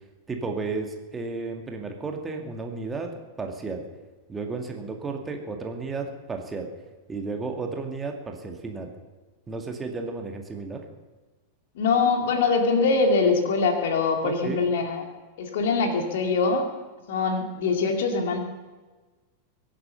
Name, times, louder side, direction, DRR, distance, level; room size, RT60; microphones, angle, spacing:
voice 1, 0.3-3.1 3.4-3.8 4.3-6.7 7.1-8.9 9.5-10.8 14.2-14.6, right 4 dB, 15° right, 3 dB, 2.1 m, -33 dB
voice 2, 11.8-15.0 15.4-16.7 17.1-18.4, left 4 dB, 55° left, 3 dB, 2.6 m, -23 dB
23.5 x 8.8 x 5.8 m, 1.3 s
figure-of-eight pair, 90°, 0 cm